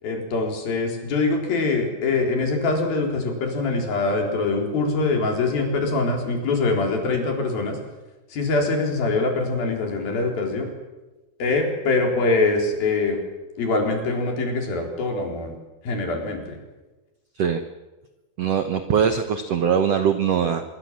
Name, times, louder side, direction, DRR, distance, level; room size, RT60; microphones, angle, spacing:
voice 1, 0.0-7.8 8.3-10.7 11.4-13.2 13.6-15.6 15.8-16.6, left 3 dB, 70° left, 2 dB, 5.9 m, -23 dB
voice 2, 18.4-20.6, right 7 dB, 70° right, 8 dB, 1.5 m, -21 dB
25.0 x 22.5 x 7.5 m, 1.1 s
omnidirectional pair, 4.4 m